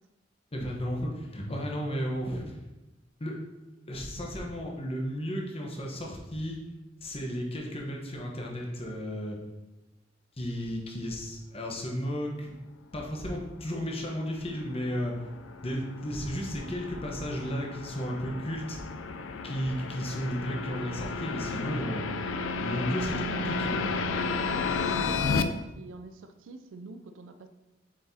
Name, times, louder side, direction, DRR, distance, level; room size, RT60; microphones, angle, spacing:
voice 1, 0.5-2.5 3.2-3.4 3.9-6.6 7.0-9.4 10.4-12.5 12.9-15.1 15.6-18.8 19.4-22.0 22.6-23.9, equal, 30° left, -1 dB, 1.0 m, -33 dB
voice 2, 1.5-1.8 24.4-27.5, right 2 dB, 85° right, 8 dB, 0.4 m, -45 dB
sound 1, 13.9-25.4, left 4 dB, 85° left, 0.4 m, -33 dB
7.2 x 4.7 x 2.8 m, 1.0 s
head